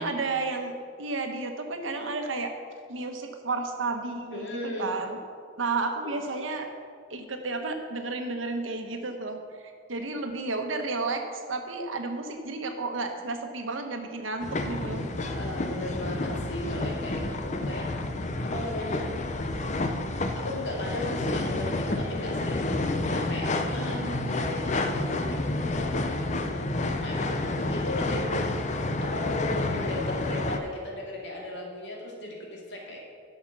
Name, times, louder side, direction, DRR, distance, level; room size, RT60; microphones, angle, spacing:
voice 1, 0.0-2.5 2.9-5.2 5.6-6.7 7.1-15.1 16.7-17.0 23.8-24.6 28.0-28.5, right 3 dB, 90° right, 5 dB, 1.2 m, -32 dB
voice 2, 4.3-4.9 6.0-6.2 15.2-17.9 18.4-19.1 20.3-28.2 29.0-33.0, left 1 dB, 65° left, -2 dB, 2.4 m, -37 dB
sound 1, 14.4-30.6, left 2 dB, 35° left, 0.6 m, -29 dB
11.0 x 6.7 x 6.1 m, 2.1 s
head